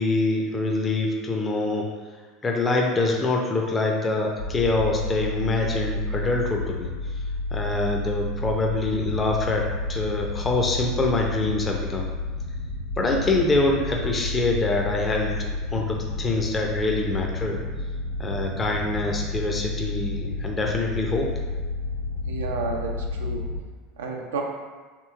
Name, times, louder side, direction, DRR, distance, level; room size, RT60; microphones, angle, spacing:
voice 1, 0.0-1.9 2.4-6.9 7.5-12.1 13.0-17.6 18.2-21.3, left 2 dB, 25° left, 0 dB, 0.5 m, -25 dB
sound 1, 4.4-23.6, left 2 dB, 90° left, 1.4 m, -30 dB
voice 2, 22.2-23.5 24.0-24.4, right 4 dB, 90° right, 1 dB, 0.4 m, -31 dB
2.9 x 2.9 x 2.3 m, 1.4 s
hypercardioid pair, 90°, 0 cm